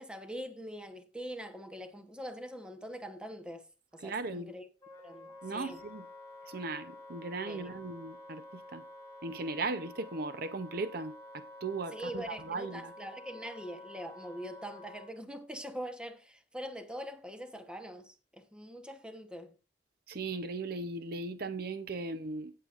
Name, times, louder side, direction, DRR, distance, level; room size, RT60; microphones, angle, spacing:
voice 1, 0.0-3.7 3.9-4.7 5.0-5.8 7.5-7.7 11.9-19.5, equal, 5° right, 1.0 m, -43 dB
voice 2, 4.0-4.5 5.4-6.0 6.5-8.8 9.2-12.9 20.1-22.5, right 3 dB, 60° right, 0.7 m, -38 dB
Wind instrument woodwind instrument, 4.8-15.1, left 1 dB, 15° left, 6.0 m, -50 dB
17.0 x 6.8 x 2.5 m
head